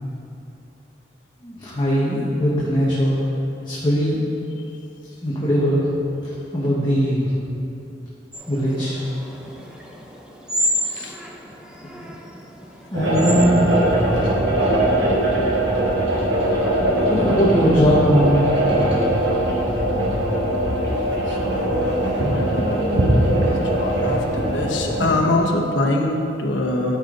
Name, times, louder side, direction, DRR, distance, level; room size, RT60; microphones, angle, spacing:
voice 1, 1.4-3.2 3.6-4.2 5.2-5.8 6.5-7.4 8.5-9.1 12.9-13.7 16.7-18.5, equal, 25° left, -8 dB, 1.3 m, -20 dB
sound 1, 8.3-14.3, equal, 5° right, 0.7 m, -30 dB
voice 2, 10.8-11.2 21.3-27.0, left 2 dB, 80° left, 0 dB, 1.1 m, -25 dB
sound 2, 12.9-25.2, right 1 dB, 70° right, 1.6 m, -21 dB
12.5 x 5.3 x 3.9 m, 2.8 s
head